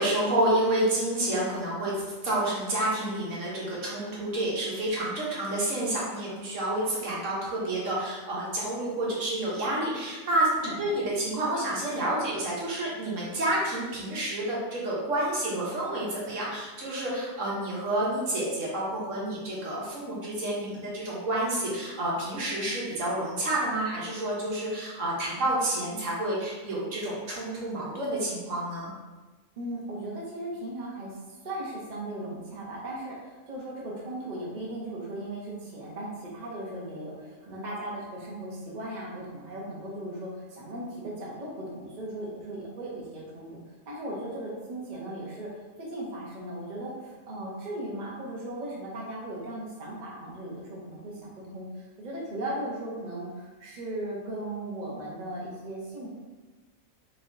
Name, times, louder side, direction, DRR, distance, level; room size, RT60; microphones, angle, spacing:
voice 1, 0.0-28.9, right 1 dB, 70° right, -5 dB, 1.3 m, -29 dB
voice 2, 29.6-43.6 43.9-45.5 45.8-56.1, right 1 dB, 40° right, -4 dB, 0.8 m, -37 dB
4.0 x 3.4 x 2.6 m, 1.2 s
omnidirectional pair, 1.4 m